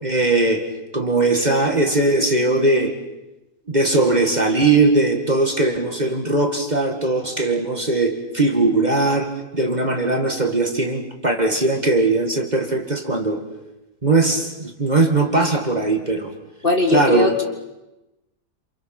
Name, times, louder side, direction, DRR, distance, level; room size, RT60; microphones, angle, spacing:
voice 1, 0.0-0.7 0.9-2.9 3.7-13.4 14.0-16.3 16.9-17.4, right 2 dB, 25° right, 4 dB, 2.1 m, -19 dB
voice 2, 16.6-17.4, left 2 dB, 35° left, 4 dB, 1.9 m, -19 dB
28.0 x 27.5 x 6.0 m, 0.98 s
omnidirectional pair, 1.7 m